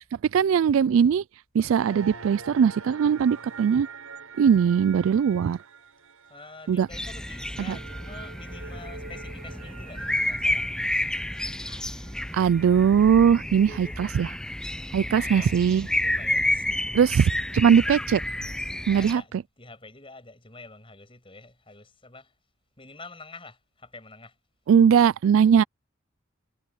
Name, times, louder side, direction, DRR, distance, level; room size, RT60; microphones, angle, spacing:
voice 1, 0.3-1.2 1.5-3.9 4.4-5.6 6.7-6.9 7.7-7.8 12.3-14.3 14.9-15.9 16.9-18.2 18.9-19.2 24.7-25.6, right 7 dB, 70° right, 0.3 m, -20 dB
sound 1, 1.8-13.2, right 5 dB, 85° right, 6.7 m, -45 dB
voice 2, 6.3-10.9 13.3-17.4 18.9-22.3 22.8-24.4, left 3 dB, 25° left, 6.6 m, -47 dB
sound 2, 6.9-19.1, left 1 dB, 5° left, 0.4 m, -30 dB
head